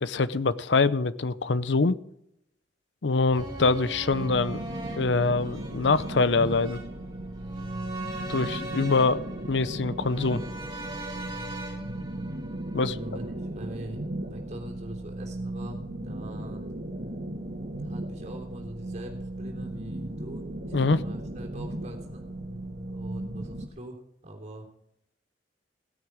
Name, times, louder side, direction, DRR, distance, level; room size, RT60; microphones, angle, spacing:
voice 1, 0.0-2.0 3.0-4.6 5.0-6.8 8.3-10.4 12.7-12.9 20.7-21.0, left 3 dB, 85° left, 16 dB, 0.7 m, -24 dB
sound 1, 3.3-13.5 13.8-13.9, right 2 dB, 25° right, 5.0 m, -41 dB
sound 2, 4.1-23.7, right 1 dB, 60° right, 2.1 m, -36 dB
voice 2, 12.8-14.0 14.3-16.7 17.8-22.3 22.9-24.7, right 1 dB, 40° right, 1 dB, 3.2 m, -43 dB
16.5 x 9.3 x 4.8 m, 0.78 s
head